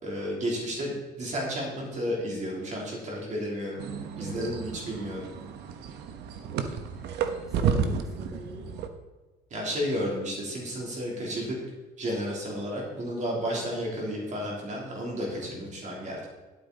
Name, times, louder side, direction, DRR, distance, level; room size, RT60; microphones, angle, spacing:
voice 1, 0.0-3.8 4.2-5.2 9.5-11.6 12.0-16.3, equal, 45° right, -3 dB, 3.3 m, -32 dB
sound 1, 3.8-8.9, right 6 dB, 80° right, 1.0 m, -32 dB
voice 2, 4.2-4.5 6.9-7.1 7.4-8.7 13.4-13.7 15.3-15.5, left 2 dB, 5° right, -2 dB, 3.7 m, -41 dB
11.5 x 8.7 x 4.1 m, 1.2 s
cardioid pair, 110°, 17 cm